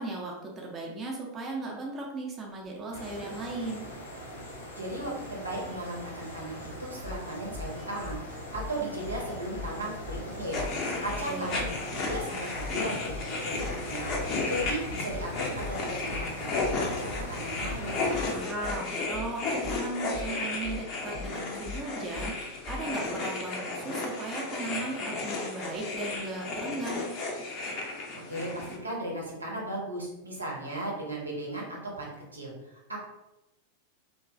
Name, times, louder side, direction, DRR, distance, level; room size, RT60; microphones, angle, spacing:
voice 1, 0.0-3.9 11.3-11.7 18.3-27.1, right 2 dB, 25° right, -2 dB, 0.5 m, -37 dB
sound 1, 2.9-18.4, left 1 dB, 75° left, 1.0 m, -41 dB
voice 2, 4.8-8.2 8.5-10.7 11.0-18.0 28.3-33.0, right 1 dB, 80° right, -2 dB, 0.8 m, -36 dB
sound 2, 7.0-23.0, left 3 dB, 5° right, 0.9 m, -40 dB
sound 3, 10.5-28.8, left 3 dB, 35° left, 0.5 m, -34 dB
3.0 x 2.3 x 2.4 m, 0.91 s
figure-of-eight pair, 90°, 0 cm